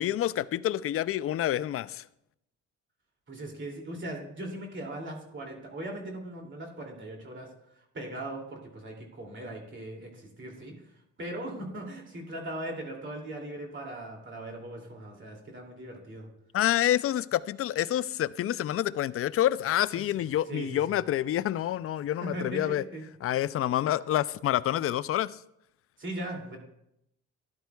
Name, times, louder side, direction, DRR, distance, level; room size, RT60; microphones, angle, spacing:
voice 1, 0.0-2.0 16.5-22.8 23.2-25.4, left 12 dB, 50° left, 0.4 m, -28 dB
voice 2, 3.3-7.5 7.9-10.7 11.2-16.3 19.9-20.0 20.5-20.8 22.2-23.0 26.0-26.6, right 1 dB, 40° right, 2.6 m, -39 dB
13.0 x 10.5 x 2.3 m
cardioid pair, 90°, 30 cm